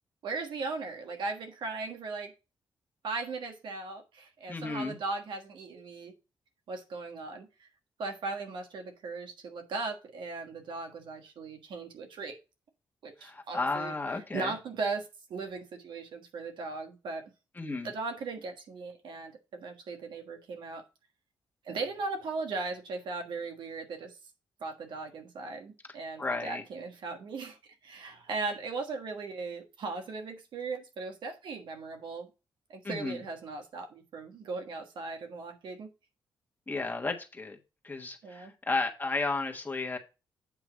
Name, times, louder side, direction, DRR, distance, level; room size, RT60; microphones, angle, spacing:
voice 1, 0.2-2.3 3.0-6.1 6.7-7.7 8.0-12.4 13.0-17.3 17.8-20.8 21.6-24.1 24.6-32.3 32.7-35.9 38.2-38.5, right 3 dB, 75° right, 5 dB, 1.4 m, -38 dB
voice 2, 4.5-4.9 13.2-14.5 17.6-17.9 26.2-26.6 32.8-33.2 36.7-37.6 37.8-40.0, left 3 dB, 25° left, 3 dB, 1.4 m, -33 dB
8.4 x 3.0 x 6.2 m, 0.29 s
cardioid pair, 80°, 8 cm